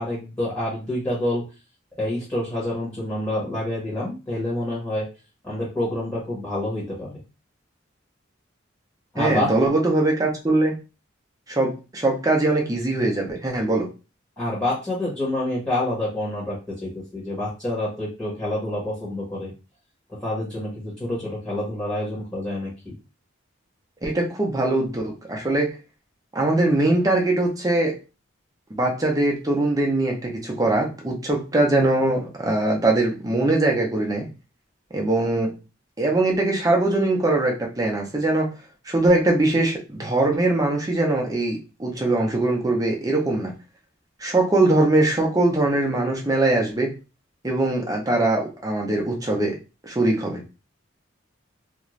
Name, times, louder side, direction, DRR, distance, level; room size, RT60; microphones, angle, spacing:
voice 1, 0.0-1.5 2.0-5.1 5.4-7.2 9.1-9.5 14.4-19.5 20.1-22.9, left 1 dB, 15° left, -7 dB, 1.0 m, -27 dB
voice 2, 9.2-10.7 11.5-13.9 24.0-25.8 26.3-27.9 28.7-34.3 34.9-35.5 36.0-38.5 38.9-43.5 44.2-46.9 47.4-49.5 49.8-50.4, right 2 dB, 20° right, 0 dB, 0.6 m, -21 dB
2.5 x 2.3 x 3.0 m, 0.31 s
head